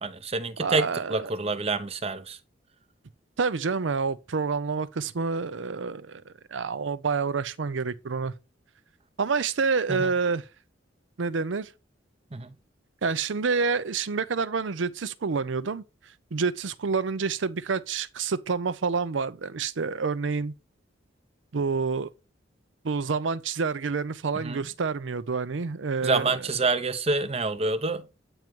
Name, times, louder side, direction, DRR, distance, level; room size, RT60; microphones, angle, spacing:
voice 1, 0.0-2.4 9.9-10.1 12.3-12.5 24.4-24.7 26.0-28.1, right 3 dB, 35° right, 0.7 m, -27 dB
voice 2, 0.6-1.3 3.4-8.3 9.2-10.4 11.2-11.7 13.0-15.8 16.3-20.5 21.5-22.1 22.8-26.4, right 5 dB, 85° right, 0.6 m, -28 dB
8.9 x 3.1 x 5.2 m
head